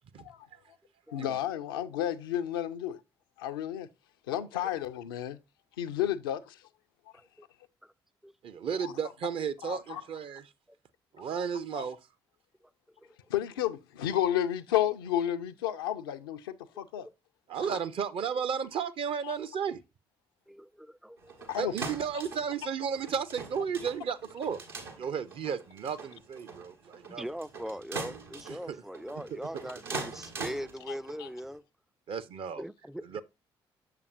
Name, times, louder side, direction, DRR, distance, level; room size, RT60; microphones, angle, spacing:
voice 1, 1.1-3.0 3.4-3.9 4.3-5.4 5.8-6.6 8.8-8.9 9.6-10.0 11.7-11.9 13.3-17.1 17.6-17.8 19.2-19.3 21.5-21.7 31.2-31.3, left 11 dB, 75° left, 0.5 m, -32 dB
voice 2, 8.4-10.5 11.1-12.0 17.5-19.8 21.6-24.6 25.0-27.2 28.5-28.8 29.3-29.4 32.1-32.6 33.0-33.2, right 7 dB, 45° right, 0.6 m, -34 dB
voice 3, 20.5-21.5 27.1-31.6 32.6-33.0, equal, 5° right, 0.4 m, -40 dB
sound 1, 21.2-31.5, right 3 dB, 80° right, 1.3 m, -43 dB
6.9 x 6.7 x 2.5 m
figure-of-eight pair, 45°, 12 cm